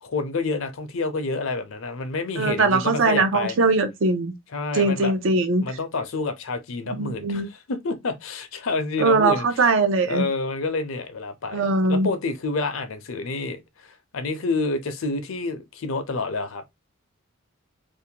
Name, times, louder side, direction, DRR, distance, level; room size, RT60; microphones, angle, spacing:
voice 1, 0.0-3.6 4.5-5.1 5.6-9.6 10.0-16.6, left 3 dB, 70° left, 0.6 m, -28 dB
voice 2, 2.4-4.3 4.7-5.6 6.9-7.5 9.0-10.2 11.5-12.1, right 3 dB, 65° right, 0.5 m, -21 dB
2.6 x 2.1 x 2.8 m
head